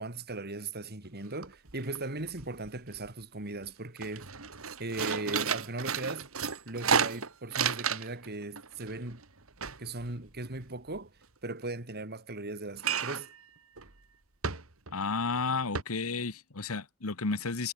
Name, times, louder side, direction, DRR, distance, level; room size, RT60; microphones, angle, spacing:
voice 1, 0.0-4.3 4.8-6.3 6.6-9.2 9.8-11.1 11.4-13.3, right 2 dB, 50° right, 3.2 m, -38 dB
sound 1, 1.1-1.2 1.4-2.0 2.3-3.1 3.5-3.6 4.0-8.3 8.6-11.0 12.8-13.4 13.8-13.9 14.4-15.0 15.3-15.4 15.7-15.8, right 6 dB, 70° right, 2.6 m, -32 dB
voice 2, 14.9-17.7, left 4 dB, 85° left, 1.5 m, -32 dB
head